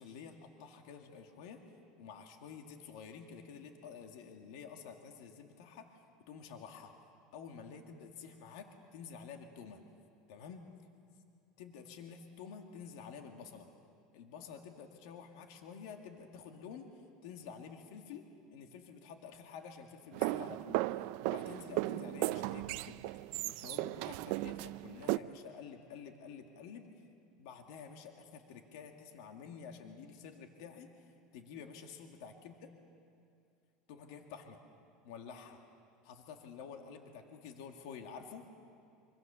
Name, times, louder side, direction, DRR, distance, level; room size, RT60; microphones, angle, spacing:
voice 1, 0.0-1.6 2.0-6.0 6.3-6.9 7.3-9.8 10.3-10.7 11.6-13.7 14.1-16.9 17.2-20.9 21.2-23.1 23.4-26.9 27.4-32.7 33.9-34.6 35.0-35.6 36.0-38.4, left 6 dB, 70° left, 4 dB, 2.0 m, -50 dB
sound 1, 20.1-25.2, right 18 dB, 55° right, 0.5 m, -36 dB
25.5 x 25.0 x 6.9 m, 2.5 s
supercardioid pair, 165°, 3 cm